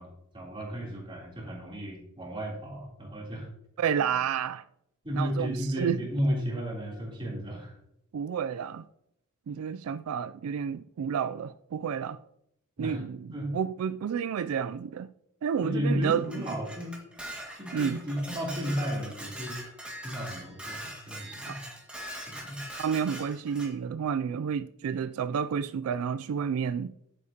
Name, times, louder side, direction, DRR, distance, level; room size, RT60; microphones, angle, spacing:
voice 1, 0.0-3.5 4.0-4.1 5.0-7.8 12.8-13.0 13.3-13.6 15.6-17.0 17.5-19.6 20.0-21.6 22.3-22.6, equal, 25° right, 3.2 m, -33 dB
voice 2, 3.8-4.6 5.1-6.1 8.1-8.8 9.5-12.2 12.8-15.1 15.4-16.3 17.7-18.0 21.5-21.6 22.8-26.9, right 7 dB, 75° right, 0.3 m, -30 dB
Dishes pots and pans, 16.0-23.7, right 1 dB, 5° right, 1.8 m, -42 dB
11.0 x 8.6 x 2.8 m
head